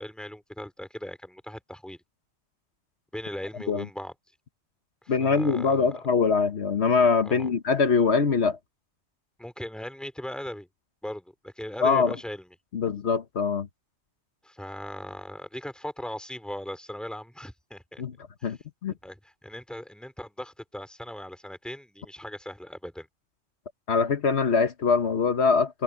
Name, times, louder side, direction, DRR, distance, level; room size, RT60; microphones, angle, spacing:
voice 1, 0.0-2.0 3.1-4.1 5.0-5.9 7.2-7.5 9.4-10.7 11.0-12.5 14.4-18.0 18.4-18.5 19.0-23.1, left 1 dB, ahead, 2.6 m, -38 dB
voice 2, 5.1-8.6 11.8-12.2 12.7-13.7 18.0-18.1 18.4-18.9 23.9-25.8, left 5 dB, 65° left, 1.4 m, -23 dB
omnidirectional pair, 1.2 m